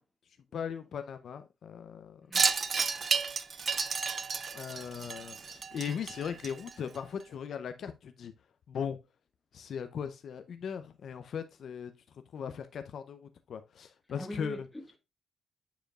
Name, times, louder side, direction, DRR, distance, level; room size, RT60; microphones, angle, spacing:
voice 1, 0.5-2.2 4.5-8.3 8.7-9.0 9.5-11.9 12.3-14.7, left 7 dB, 60° left, 0.6 m, -38 dB
Wind chime, 2.3-7.0, right 5 dB, 35° right, 0.5 m, -32 dB
voice 2, 14.1-15.0, left 1 dB, 5° left, 1.3 m, -42 dB
9.0 x 5.0 x 2.3 m
cardioid pair, 140°, 0 cm